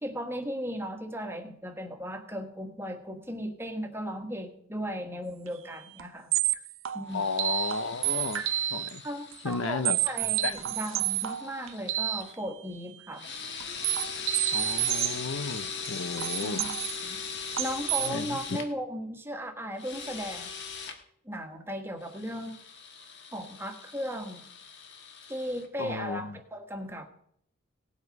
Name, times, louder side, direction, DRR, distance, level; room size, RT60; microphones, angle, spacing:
voice 1, 0.0-6.3 6.9-7.3 9.0-13.2 16.4-16.7 17.0-17.2 17.6-20.5 21.2-22.6 23.3-24.4 25.3-27.1, equal, 10° right, 5 dB, 1.4 m, -36 dB
sound 1, 5.5-5.6 6.0-6.1 6.3-9.0 9.3-12.2 13.6-18.1, right 13 dB, 70° right, 0.6 m, -30 dB
voice 2, 7.1-9.0 9.4-10.0 10.2-10.7 14.5-16.7 18.0-18.6 25.8-26.4, left 4 dB, 80° left, 14 dB, 0.7 m, -34 dB
sound 2, 7.1-12.4 13.1-18.7 19.7-21.0 22.0-25.7, left 5 dB, 55° left, 1.6 m, -40 dB
18.0 x 8.0 x 5.3 m, 0.68 s
head